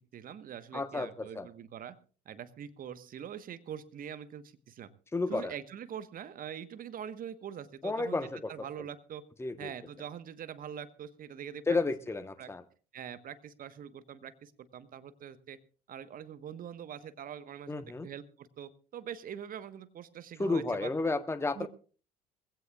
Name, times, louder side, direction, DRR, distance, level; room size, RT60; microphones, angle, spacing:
voice 1, 0.1-2.0 2.2-4.9 5.3-9.2 9.6-11.6 12.4-12.5 12.9-15.6 15.9-20.9 21.5-21.7, right 9 dB, 45° right, 13 dB, 1.2 m, -43 dB
voice 2, 0.7-1.5 5.1-5.5 7.8-8.5 9.4-9.7 11.7-12.6 17.7-18.1 20.4-21.7, left 3 dB, 10° left, 11 dB, 1.1 m, -32 dB
22.0 x 16.5 x 2.4 m, 0.38 s
hypercardioid pair, 60°, 21 cm